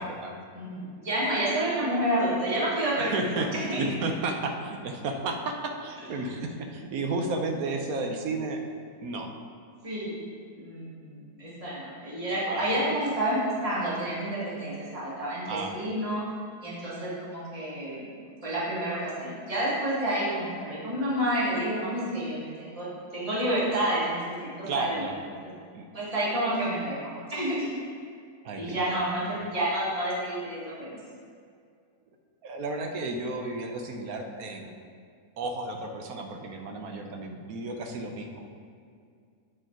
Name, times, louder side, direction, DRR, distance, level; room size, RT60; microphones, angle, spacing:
voice 1, 0.0-0.3 3.0-3.5 3.8-8.6 9.0-9.3 12.5-12.8 15.5-15.9 24.7-25.1 25.7-25.8 28.4-29.0 32.4-34.7 35.4-38.5, right 3 dB, 70° right, 4 dB, 1.1 m, -33 dB
voice 2, 0.5-3.9 9.8-10.2 10.6-16.2 16.6-18.1 18.4-25.0 25.4-25.5 25.9-27.0 27.3-27.7 28.6-31.0, right 1 dB, 20° right, -8 dB, 1.9 m, -29 dB
8.7 x 4.8 x 4.5 m, 2.2 s
omnidirectional pair, 1.7 m